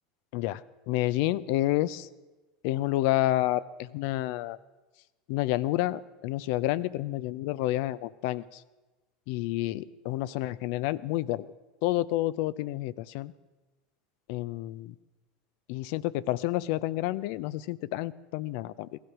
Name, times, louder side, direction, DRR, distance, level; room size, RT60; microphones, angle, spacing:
voice 1, 0.3-2.1 2.6-4.6 5.3-8.6 9.3-11.5 11.8-13.3 14.3-14.9 15.7-19.0, left 16 dB, 60° left, 17 dB, 0.5 m, -29 dB
17.0 x 12.5 x 6.0 m, 1.1 s
hypercardioid pair, 85°, 0 cm